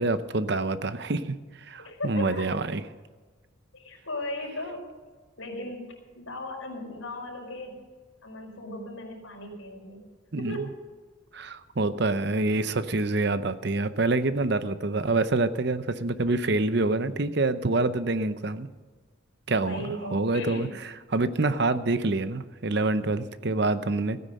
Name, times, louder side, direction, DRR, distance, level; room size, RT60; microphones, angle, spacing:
voice 1, 0.0-2.8 10.3-10.7 11.3-18.7 19.5-19.9 20.1-24.2, right 2 dB, 55° right, 12 dB, 0.7 m, -26 dB
voice 2, 1.8-2.5 3.7-4.9 5.4-7.8 8.2-10.0 10.4-10.8 19.7-20.7 23.4-23.5, left 1 dB, 85° left, 1 dB, 4.8 m, -37 dB
17.0 x 9.6 x 6.6 m, 1.4 s
head